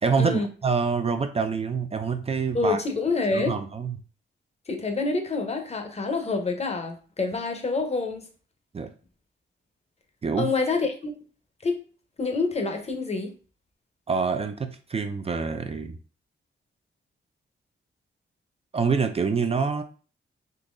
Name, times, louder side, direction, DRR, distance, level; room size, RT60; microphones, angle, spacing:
voice 1, 0.0-2.8 3.3-4.0 8.7-8.9 10.2-10.5 14.1-16.0 18.7-19.8, right 5 dB, 30° right, 0.4 m, -26 dB
voice 2, 2.5-3.6 4.7-8.3 10.4-11.1 11.6-11.8 12.2-13.3, left 3 dB, 30° left, 0.8 m, -27 dB
3.8 x 2.8 x 2.5 m
cardioid pair, 70°, 21 cm